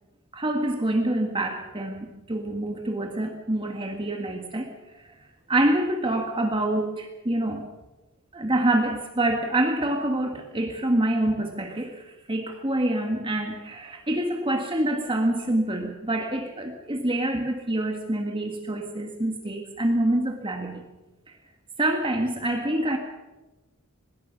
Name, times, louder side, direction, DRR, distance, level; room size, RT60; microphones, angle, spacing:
voice 1, 0.3-5.0 5.5-7.7 8.3-20.8 21.8-23.0, right 1 dB, 25° right, 3 dB, 1.7 m, -26 dB
23.5 x 21.0 x 6.0 m, 1.1 s
head